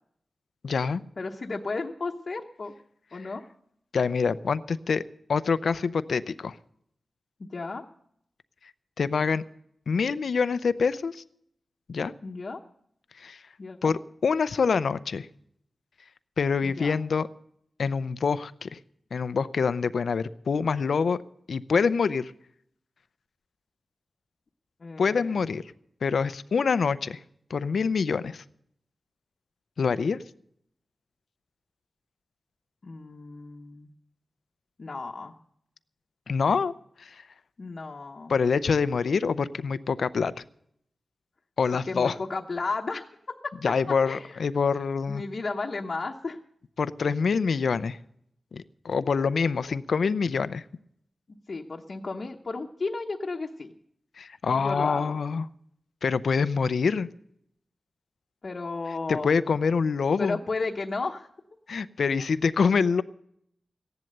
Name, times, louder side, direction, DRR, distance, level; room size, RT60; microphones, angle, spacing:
voice 1, 0.6-1.0 3.9-5.0 5.3-6.5 9.0-9.4 9.9-11.2 11.9-12.1 13.2-13.4 13.8-15.3 16.4-17.3 17.8-18.8 19.1-21.2 21.5-22.3 25.0-25.6 26.0-27.2 27.5-28.4 29.8-30.2 36.3-36.7 37.0-37.1 38.3-40.3 41.6-42.1 43.6-45.2 46.8-48.0 48.5-50.6 54.2-55.4 56.0-57.1 59.1-60.4 61.7-63.0, left 5 dB, 80° left, 15 dB, 0.6 m, -25 dB
voice 2, 1.2-2.7 3.1-3.4 7.5-7.8 12.2-12.6 13.6-13.9 16.6-17.0 24.8-25.4 32.8-33.9 34.8-35.3 37.6-38.3 41.8-44.4 45.1-46.4 48.9-49.8 51.5-53.7 54.5-55.1 58.4-59.3 60.2-61.3 62.2-62.3, left 3 dB, 50° left, 0 dB, 1.0 m, -34 dB
15.5 x 11.0 x 6.6 m, 0.71 s
wide cardioid pair, 90°, 0 cm